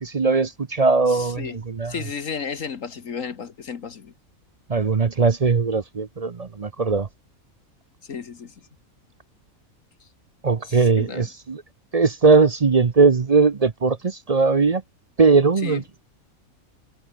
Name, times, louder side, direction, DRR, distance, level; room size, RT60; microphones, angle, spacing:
voice 1, 0.0-1.9 4.7-7.1 10.4-11.6 11.9-14.8 15.2-15.8, right 4 dB, 35° right, 0.7 m, -19 dB
voice 2, 1.1-1.6 1.9-4.1 8.0-8.5 10.6-11.3 15.6-15.8, left 6 dB, 65° left, 1.7 m, -33 dB
omnidirectional pair, 1.5 m